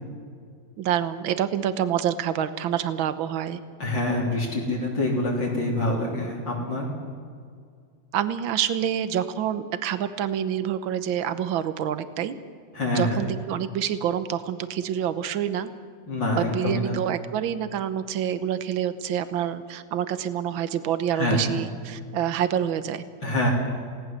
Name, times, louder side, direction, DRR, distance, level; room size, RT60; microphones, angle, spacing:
voice 1, 0.8-3.6 8.1-12.4 12.9-15.7 16.4-23.0, right 9 dB, 70° right, 12 dB, 1.8 m, -27 dB
voice 2, 3.8-6.9 12.7-13.2 16.1-17.0 21.1-21.4 23.2-23.5, left 1 dB, 60° left, -3 dB, 4.2 m, -26 dB
28.0 x 18.0 x 7.6 m, 2.1 s
omnidirectional pair, 2.3 m